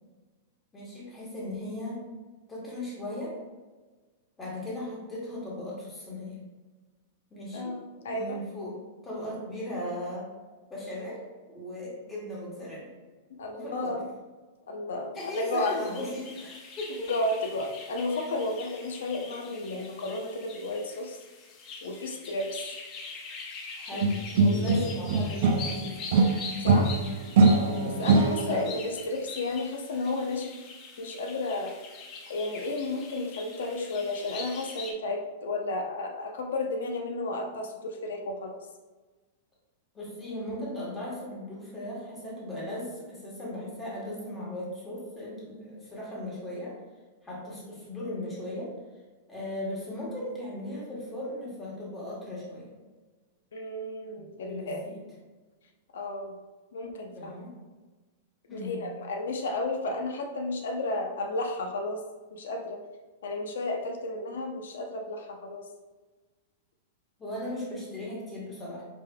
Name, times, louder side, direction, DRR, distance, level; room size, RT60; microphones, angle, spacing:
voice 1, 0.7-2.0 2.5-3.3 4.4-6.4 7.3-7.8 8.0-8.8 9.0-10.3 10.7-12.9 13.5-14.0 15.1-17.1 23.8-24.2 24.5-26.0 27.7-28.1 28.5-28.7 39.9-46.8 47.2-48.7 49.3-52.7 54.2-55.0 57.1-57.5 58.5-58.9 67.2-68.8, left 1 dB, 10° left, -5 dB, 1.2 m, -37 dB
voice 2, 7.5-8.4 13.3-14.1 14.7-15.8 17.1-21.2 21.8-22.8 23.9-24.0 24.3-24.9 26.6-27.0 28.0-30.5 31.0-31.8 32.3-38.6 53.5-54.9 55.9-56.3 56.7-57.3 58.5-62.0 62.3-62.8 63.2-65.7, left 2 dB, 85° left, 2 dB, 0.6 m, -33 dB
sound 1, 15.2-34.9, left 4 dB, 25° left, 0.5 m, -43 dB
sound 2, 24.0-25.8 26.1-28.7, right 3 dB, 55° right, 0.4 m, -22 dB
4.9 x 3.7 x 2.2 m, 1.3 s
supercardioid pair, 165°, 0 cm